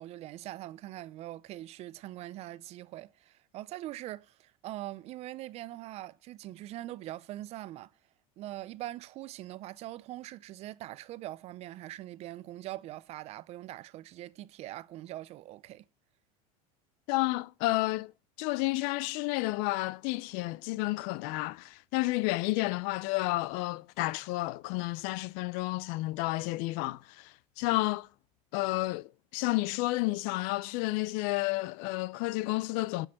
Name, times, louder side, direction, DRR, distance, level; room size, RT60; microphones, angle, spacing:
voice 1, 0.0-7.9 8.4-15.8, right 15 dB, 35° right, 0.5 m, -42 dB
voice 2, 17.1-18.1 18.4-28.1 28.5-33.1, left 20 dB, 55° left, 0.5 m, -31 dB
10.0 x 6.4 x 8.5 m
supercardioid pair, 145°, 17 cm